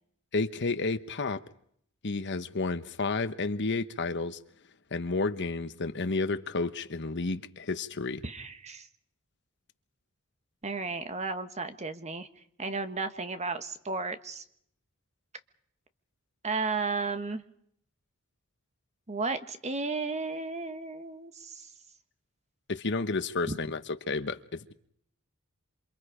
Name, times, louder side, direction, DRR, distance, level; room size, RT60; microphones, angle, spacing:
voice 1, 0.3-1.4 2.0-4.4 4.9-8.2 22.7-23.8 24.1-24.7, left 3 dB, 55° left, 1.1 m, -31 dB
voice 2, 8.2-8.9 10.6-12.3 12.6-14.4 16.4-17.4 19.1-21.7 23.5-23.6, right 3 dB, 30° right, 1.5 m, -34 dB
28.0 x 26.0 x 5.0 m
head